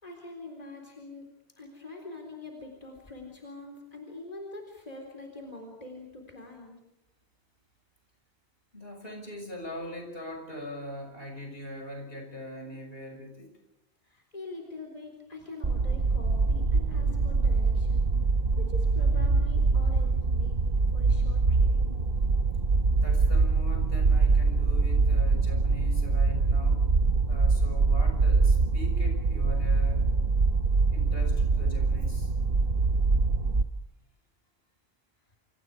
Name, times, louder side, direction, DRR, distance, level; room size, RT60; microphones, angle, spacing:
voice 1, 0.0-6.8 14.0-18.1 18.6-20.6 20.9-21.7, left 2 dB, 40° left, 1 dB, 4.1 m, -44 dB
voice 2, 8.7-13.5 23.0-26.8 27.3-30.0 30.9-32.3, left 1 dB, 65° left, 2 dB, 6.8 m, -41 dB
sound 1, 15.6-33.6, right 4 dB, 60° right, 1.4 m, -24 dB
28.0 x 28.0 x 5.0 m, 0.91 s
omnidirectional pair, 1.1 m